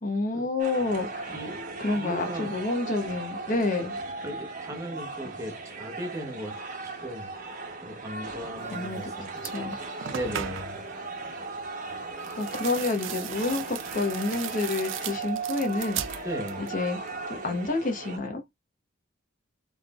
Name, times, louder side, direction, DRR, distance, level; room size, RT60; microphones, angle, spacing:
voice 1, 0.0-1.4 1.8-4.0 8.6-9.1 9.4-9.8 12.4-16.3 16.6-17.0 17.3-18.4, left 3 dB, 40° left, 0.9 m, -29 dB
sound 1, 0.6-18.2, right 3 dB, 40° right, 1.2 m, -37 dB
voice 2, 1.3-1.6 1.9-2.5 4.2-7.3 7.8-9.8 10.1-10.8 16.2-16.7, equal, 15° right, 1.0 m, -37 dB
sound 2, 8.9-9.1 9.4-10.9 12.2-16.8 17.1-17.7, right 9 dB, 65° right, 0.5 m, -38 dB
3.9 x 3.4 x 2.4 m
head